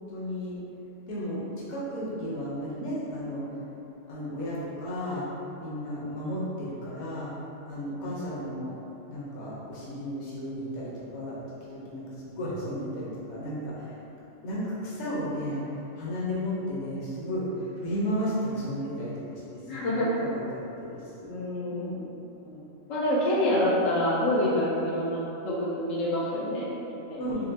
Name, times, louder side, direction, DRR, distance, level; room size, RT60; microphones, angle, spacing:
voice 1, 0.1-0.6 1.1-1.4 1.7-3.5 4.1-5.2 5.6-7.3 7.7-8.7 9.1-11.4 11.7-14.0 14.4-15.6 15.9-21.3 21.7-21.9 22.4-22.6 23.4-23.5 27.2-27.5, equal, 65° left, -7 dB, 1.1 m, -34 dB
voice 2, 19.7-20.1 21.3-22.1 22.9-27.2, left 1 dB, 85° left, -7 dB, 1.1 m, -27 dB
4.3 x 2.8 x 2.8 m, 2.9 s
omnidirectional pair, 1.3 m